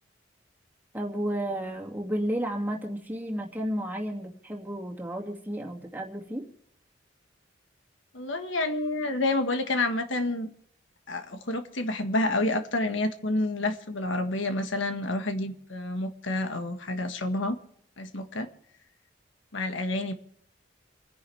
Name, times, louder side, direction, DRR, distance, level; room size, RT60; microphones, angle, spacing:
voice 1, 0.9-6.4, equal, 10° right, -1 dB, 2.5 m, -32 dB
voice 2, 8.1-10.5 11.1-17.6 18.0-18.5 19.5-20.1, left 2 dB, 85° left, 7 dB, 1.6 m, -29 dB
28.5 x 10.5 x 3.4 m, 0.72 s
head